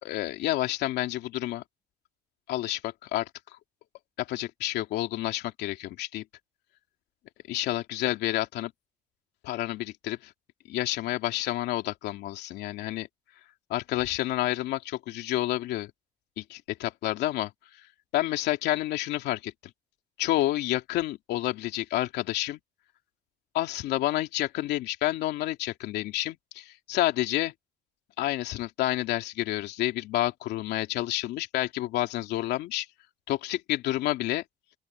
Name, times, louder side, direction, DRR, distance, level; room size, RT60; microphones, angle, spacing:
voice 1, 0.0-1.6 2.5-3.3 4.2-6.2 7.5-8.7 9.4-10.3 10.7-13.1 13.7-15.9 16.4-17.5 18.1-19.5 20.2-22.6 23.5-27.5 28.2-32.9 33.3-34.4, left 15 dB, 80° left, 2.8 m, -29 dB
open air
cardioid pair, 110°, 17 cm